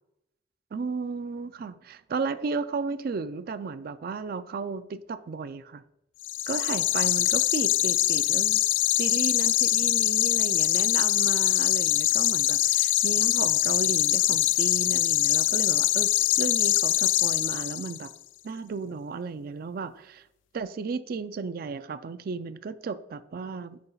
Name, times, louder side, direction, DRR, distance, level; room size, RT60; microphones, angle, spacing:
voice 1, 0.7-5.8 6.5-8.6 9.0-16.1 16.4-18.1 18.4-20.2 20.5-23.8, right 4 dB, 50° right, 0.4 m, -34 dB
sound 1, 6.2-18.1, left 15 dB, 80° left, 0.3 m, -23 dB
9.5 x 5.2 x 2.3 m
head